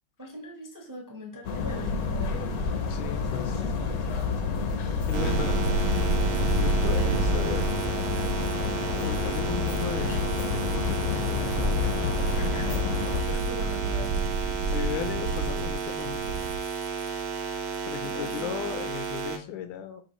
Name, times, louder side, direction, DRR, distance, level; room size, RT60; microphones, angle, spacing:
voice 1, 0.2-2.4 5.0-5.6 12.4-14.5 18.0-18.7, equal, 20° right, 0 dB, 0.5 m, -42 dB
sound 1, 1.4-13.2, left 6 dB, 65° left, 0.9 m, -29 dB
sound 2, 2.1-16.6, right 3 dB, 75° right, 1.4 m, -31 dB
voice 2, 2.9-3.8 5.1-5.6 6.6-7.7 8.9-12.1 12.4-12.6 13.3-13.4 14.6-16.7 17.9-20.0, left 9 dB, 85° left, 8 dB, 1.5 m, -36 dB
sound 3, 5.1-19.4, right 6 dB, 60° right, 1.0 m, -33 dB
5.5 x 2.9 x 3.0 m, 0.40 s
omnidirectional pair, 2.2 m